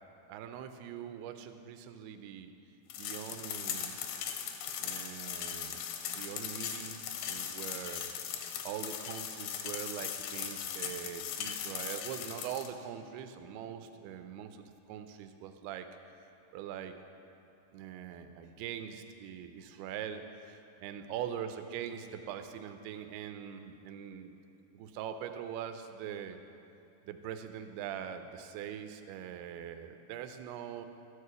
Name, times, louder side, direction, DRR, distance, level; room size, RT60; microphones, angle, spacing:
voice 1, 0.3-2.5 3.0-4.0 4.8-8.1 8.6-15.9 16.5-17.0 17.7-24.4 24.7-26.4 27.0-30.9, right 9 dB, 80° right, 7 dB, 2.5 m, -42 dB
sound 1, 2.9-12.7, left 8 dB, 80° left, 2.2 m, -39 dB
13.0 x 4.8 x 6.8 m, 2.7 s
omnidirectional pair, 4.7 m